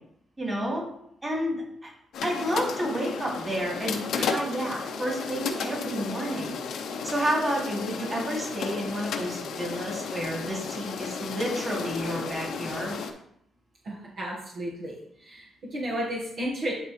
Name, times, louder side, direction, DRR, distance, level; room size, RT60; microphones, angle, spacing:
voice 1, 0.4-0.8 1.2-1.9 2.2-6.5 7.0-13.0, equal, 20° right, -3 dB, 2.9 m, -30 dB
sound 1, 2.1-13.1, left 5 dB, 75° left, 0.9 m, -33 dB
voice 2, 13.8-14.9 15.2-16.7, right 1 dB, 60° right, -4 dB, 1.7 m, -33 dB
11.0 x 3.8 x 3.3 m, 0.72 s
cardioid pair, 95°, 0 cm